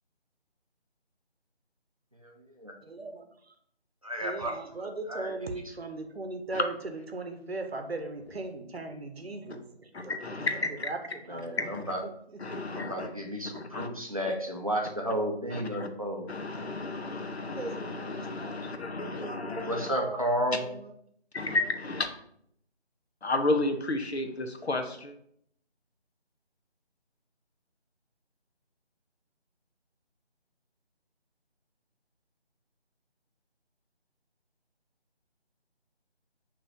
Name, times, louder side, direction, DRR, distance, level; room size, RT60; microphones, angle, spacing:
voice 1, 2.8-3.3 4.2-11.7 12.0-12.6 17.5-18.5 19.2-20.9, right 2 dB, 65° right, 0.8 m, -39 dB
voice 2, 4.0-4.5 5.1-5.3 11.3-12.0 12.7-16.3 19.7-20.6, equal, 35° right, 0.5 m, -32 dB
voice 3, 9.9-10.7 11.6-11.8 12.4-13.1 13.5-13.9 15.5-15.9 16.3-19.9 21.3-22.1 23.2-25.1, left 2 dB, 70° left, 0.7 m, -32 dB
6.2 x 3.0 x 2.6 m
figure-of-eight pair, 160°, 33 cm